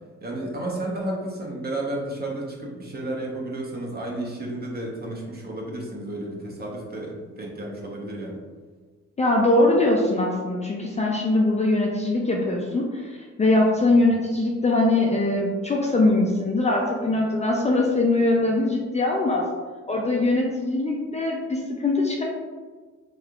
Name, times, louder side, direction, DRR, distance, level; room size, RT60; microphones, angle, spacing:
voice 1, 0.2-8.4 20.9-21.1, right 1 dB, 30° right, -2 dB, 0.9 m, -32 dB
voice 2, 9.2-19.4 19.9-22.2, left 2 dB, 25° left, -2 dB, 0.4 m, -22 dB
3.4 x 2.8 x 2.3 m, 1.4 s
cardioid pair, 90°, 30 cm